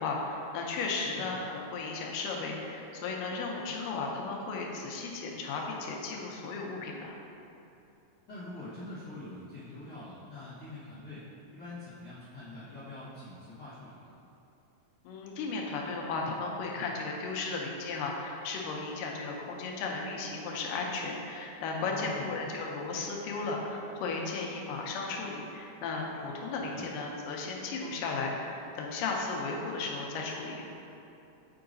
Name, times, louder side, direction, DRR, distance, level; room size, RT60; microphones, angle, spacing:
voice 1, 0.0-7.2 15.0-30.7, left 3 dB, 90° left, -1 dB, 2.3 m, -35 dB
voice 2, 8.2-11.2 11.5-14.1 21.9-22.3 26.6-26.8, left 2 dB, 50° left, -15 dB, 1.3 m, -44 dB
7.7 x 4.7 x 2.6 m, 2.8 s
omnidirectional pair, 3.8 m